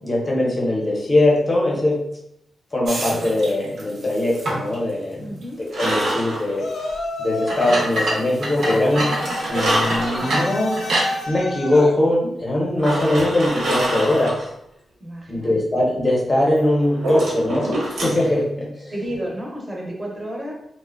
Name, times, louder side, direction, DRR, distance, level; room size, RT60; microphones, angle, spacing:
voice 1, 0.0-2.0 2.7-6.7 7.2-9.1 9.3-10.7 11.3-14.5 15.3-18.9, left 1 dB, 25° left, -3 dB, 0.7 m, -21 dB
sound 1, 2.9-4.8 5.3-5.4 6.4-6.5 7.4-11.2, right 1 dB, 65° right, 0.6 m, -27 dB
voice 2, 5.2-5.6 15.0-15.5 18.9-20.5, right 1 dB, 15° right, -2 dB, 0.6 m, -31 dB
sound 2, 5.7-6.9 8.9-10.5 11.0-11.1 12.8-14.4 16.6-18.3, right 1 dB, 85° right, 0.9 m, -25 dB
Yell, 6.6-7.9 8.6-12.0, left 2 dB, 60° left, 0.3 m, -30 dB
2.5 x 2.0 x 2.4 m, 0.77 s
wide cardioid pair, 130°, 0 cm